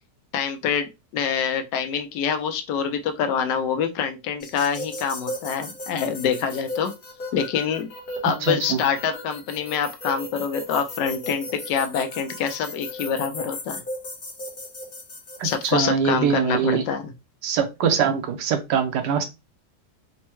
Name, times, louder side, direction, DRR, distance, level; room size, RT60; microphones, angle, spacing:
voice 1, 0.3-6.9 7.3-7.9 8.2-13.8 15.4-17.1, left 7 dB, 80° left, 1.2 m, -26 dB
sound 1, 4.4-15.7, left 1 dB, 40° left, 0.9 m, -36 dB
voice 2, 8.4-8.8 15.4-16.8 17.4-19.2, right 7 dB, 75° right, 1.3 m, -23 dB
4.4 x 2.1 x 3.0 m
omnidirectional pair, 1.9 m